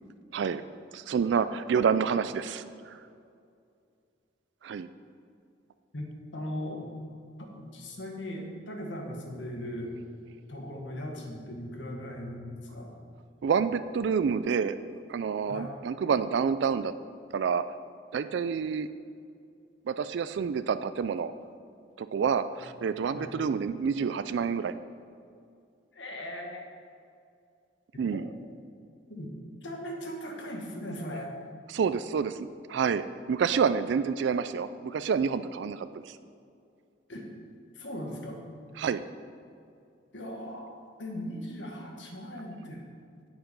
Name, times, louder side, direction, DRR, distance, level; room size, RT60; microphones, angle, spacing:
voice 1, 0.9-3.0 4.6-4.9 13.4-14.7 15.1-16.9 17.3-17.6 18.1-18.9 19.9-21.3 22.0-24.7 28.0-28.3 31.7-36.2 38.8-39.0, right 6 dB, 65° right, 12 dB, 0.3 m, -28 dB
voice 2, 5.9-6.9 7.4-9.9 10.5-12.9 15.5-15.7 23.1-23.3 25.9-26.7 28.0-28.3 29.1-31.3 37.1-37.3 37.7-38.4 40.1-42.8, equal, 75° left, 1 dB, 1.6 m, -39 dB
8.7 x 8.1 x 5.2 m, 2.4 s
head